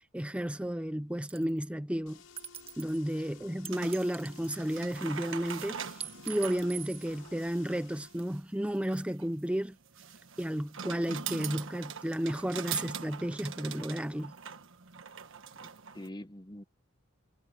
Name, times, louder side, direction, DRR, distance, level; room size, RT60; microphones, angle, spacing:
voice 1, 0.0-2.2 2.8-9.8 10.4-14.3, equal, 5° right, 0.6 m, -33 dB
sound 1, 1.3-1.6 2.4-3.0 3.7-4.9 6.0-7.1, right 9 dB, 30° right, 1.2 m, -43 dB
sound 2, 2.0-8.2, left 5 dB, 85° left, 7.2 m, -55 dB
sound 3, 3.7-16.1, right 7 dB, 65° right, 1.3 m, -43 dB
voice 2, 15.5-16.6, left 1 dB, 20° left, 1.2 m, -45 dB
head